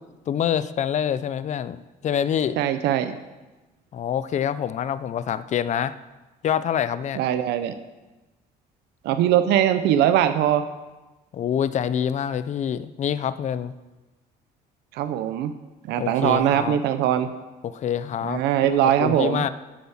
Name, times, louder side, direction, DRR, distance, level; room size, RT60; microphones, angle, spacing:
voice 1, 0.3-2.6 3.9-5.9 6.4-7.2 11.3-13.7 16.0-16.8 17.6-18.4 18.7-19.5, left 9 dB, 45° left, 15 dB, 0.6 m, -26 dB
voice 2, 2.6-3.2 7.2-7.7 9.0-10.7 14.9-15.5 15.8-17.3 18.2-19.4, right 11 dB, 85° right, 9 dB, 0.8 m, -21 dB
9.9 x 8.4 x 7.2 m, 1.1 s
cardioid pair, 110°, 17 cm